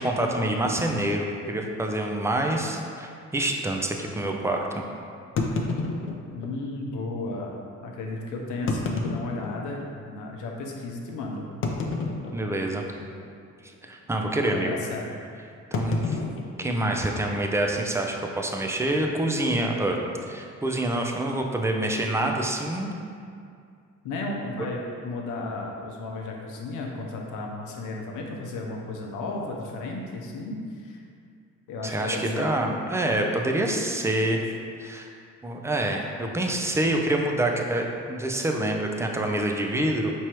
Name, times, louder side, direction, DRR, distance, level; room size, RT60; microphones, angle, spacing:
voice 1, 0.0-4.8 12.3-12.8 13.8-14.7 15.7-16.2 16.6-22.9 31.8-34.4 34.8-35.1 35.4-40.1, right 1 dB, 10° right, 2 dB, 0.4 m, -26 dB
sound 1, 0.6-0.8 1.5-1.7 2.0-2.1 2.7-2.8 5.4-6.6 7.4-7.5 8.5-9.9 10.5-10.6 11.6-12.7 13.0-13.4 13.6-13.9 15.7-17.4, left 3 dB, 45° left, 0.5 m, -30 dB
voice 2, 6.3-7.5 7.8-11.4 14.5-15.0 24.0-31.0 31.7-32.5, left 2 dB, 85° left, 0 dB, 0.7 m, -34 dB
4.6 x 3.1 x 2.9 m, 2.3 s
cardioid pair, 90°, 30 cm